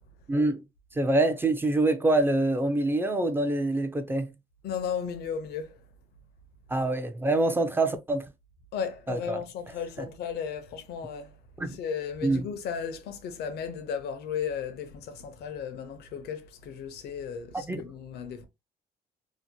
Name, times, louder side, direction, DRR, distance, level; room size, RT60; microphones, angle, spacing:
voice 1, 0.3-0.6 1.0-4.3 6.7-8.3 9.1-9.4 11.6-11.8 12.2-12.5 17.5-17.8, right 2 dB, 15° right, 0.3 m, -25 dB
voice 2, 4.6-5.8 8.7-11.4 11.7-18.4, left 7 dB, 75° left, 0.6 m, -35 dB
2.7 x 2.1 x 2.7 m
cardioid pair, 110°, 17 cm